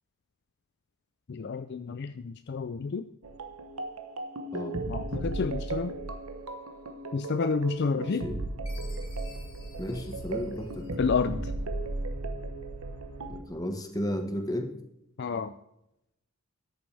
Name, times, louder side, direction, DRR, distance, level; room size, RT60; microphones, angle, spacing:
voice 1, 1.3-3.0 4.9-5.9 7.1-8.3 11.0-11.5 15.2-15.5, left 5 dB, 50° left, 11 dB, 0.4 m, -30 dB
sound 1, 3.2-13.4, right 2 dB, 75° right, 1.2 m, -36 dB
voice 2, 7.9-8.4 9.8-10.9 13.3-14.7, left 1 dB, 15° left, 5 dB, 1.4 m, -34 dB
Chime, 8.7-11.2, left 4 dB, 70° left, 3.9 m, -54 dB
14.0 x 10.0 x 3.4 m, 0.84 s
head